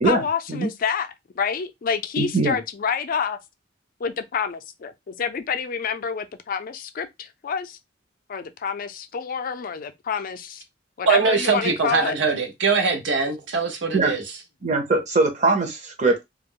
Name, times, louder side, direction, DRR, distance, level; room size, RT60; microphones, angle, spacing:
voice 1, 0.0-3.4 4.0-7.8 8.3-10.6 11.0-12.2, left 6 dB, 50° left, 0.4 m, -28 dB
voice 2, 2.2-2.6 13.9-14.1 14.6-16.2, right 3 dB, 40° right, 0.8 m, -21 dB
voice 3, 11.1-14.2, right 4 dB, 75° right, 0.8 m, -22 dB
2.3 x 2.1 x 3.6 m
head